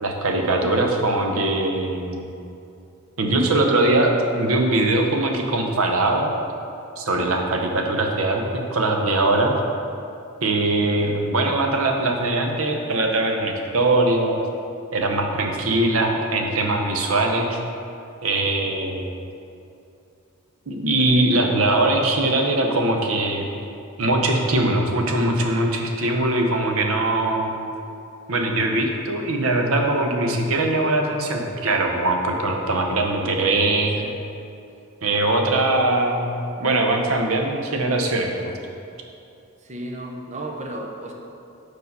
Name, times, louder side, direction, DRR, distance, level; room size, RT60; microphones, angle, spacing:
voice 1, 0.0-2.3 3.2-6.3 7.0-9.6 10.4-14.4 14.9-17.6 18.2-19.1 20.7-23.5 24.0-27.7 28.3-34.0 35.0-36.3 36.6-38.5, right 2 dB, 85° right, 2 dB, 0.7 m, -21 dB
voice 2, 39.6-41.1, right 1 dB, 35° right, 0 dB, 0.7 m, -34 dB
4.8 x 4.7 x 5.3 m, 2.6 s
head